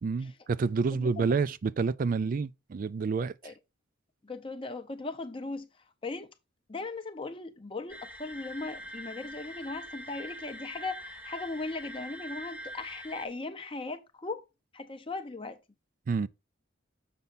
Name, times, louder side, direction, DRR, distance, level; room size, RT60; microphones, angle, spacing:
voice 1, 0.0-3.3 16.1-16.3, right 4 dB, 40° right, 0.3 m, -28 dB
voice 2, 4.2-5.7 6.0-6.3 6.7-14.4 14.7-15.6, left 3 dB, 25° left, 0.5 m, -38 dB
sound 1, 7.9-13.3, equal, 10° right, 0.8 m, -44 dB
6.8 x 5.5 x 3.9 m
head